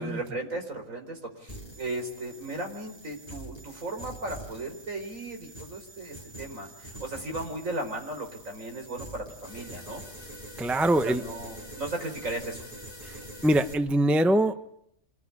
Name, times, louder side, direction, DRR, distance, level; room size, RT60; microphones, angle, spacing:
voice 1, 0.0-10.0 11.0-12.6, right 2 dB, 65° right, 4 dB, 5.1 m, -36 dB
sound 1, 1.5-13.7, equal, 25° left, 6.0 m, -45 dB
voice 2, 10.6-11.2 13.0-14.6, right 1 dB, ahead, 9 dB, 0.7 m, -24 dB
27.0 x 18.0 x 9.8 m, 0.74 s
omnidirectional pair, 1.5 m